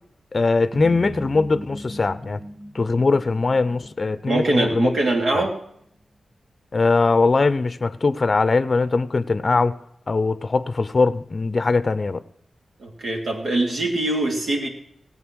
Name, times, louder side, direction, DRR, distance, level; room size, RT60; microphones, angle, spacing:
voice 1, 0.3-2.4 2.7-4.9 5.3-5.5 6.7-9.8 10.1-12.2, left 3 dB, 50° left, 15 dB, 0.6 m, -21 dB
sound 1, 0.7-5.1, right 1 dB, 15° right, 2.6 m, -38 dB
voice 2, 4.2-5.6 12.8-14.7, right 2 dB, 75° right, 0 dB, 3.2 m, -23 dB
16.5 x 8.7 x 6.2 m, 0.71 s
cardioid pair, 45°, 0 cm